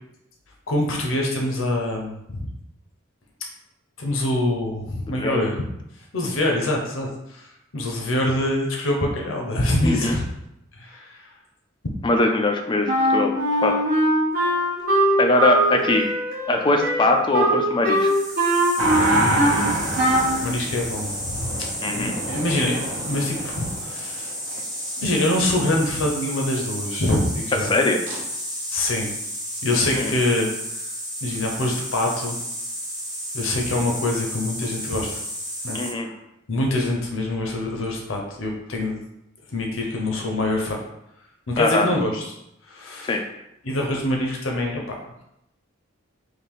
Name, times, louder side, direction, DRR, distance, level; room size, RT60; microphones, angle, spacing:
voice 1, 0.7-2.5 4.0-5.6 6.1-10.2 10.7-11.3 20.4-21.5 21.9-22.8 23.0-24.3 25.0-27.7 28.7-29.1 29.6-30.5 31.2-32.4 33.3-35.2 35.6-36.1 36.5-39.0 39.5-40.8 41.5-42.3 42.7-43.2 43.6-45.0, left 1 dB, 80° left, 0 dB, 0.8 m, -25 dB
voice 2, 9.8-10.2 12.0-13.3 13.6-13.7 15.2-16.0 16.5-18.1 21.8-22.1 27.7-28.0 30.0-30.1 35.7-36.1 41.6-41.9 43.0-43.2, left 2 dB, 25° left, 3 dB, 0.5 m, -21 dB
Wind instrument woodwind instrument, 12.9-19.6 20.0-20.4, right 1 dB, 50° right, 1.0 m, -21 dB
sound 1, 17.9-35.9, equal, 5° right, 1.2 m, -32 dB
sound 2, 18.8-24.6 28.1-28.2, right 1 dB, 75° right, 0.8 m, -27 dB
4.0 x 2.6 x 3.5 m, 0.82 s
head